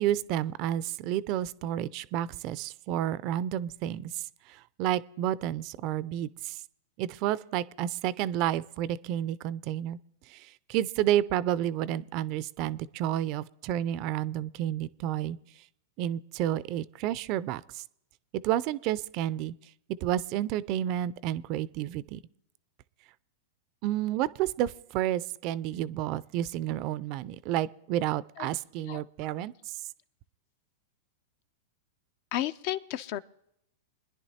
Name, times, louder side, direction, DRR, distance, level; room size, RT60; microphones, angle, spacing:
voice 1, 0.0-6.6 7.0-10.0 10.3-15.4 16.0-17.8 18.3-19.5 20.0-22.2 23.8-29.7, right 12 dB, 50° right, 19 dB, 0.4 m, -30 dB
voice 2, 32.3-33.2, left 13 dB, 55° left, 15 dB, 0.4 m, -33 dB
24.5 x 10.5 x 2.8 m, 0.78 s
hypercardioid pair, 110°, 0 cm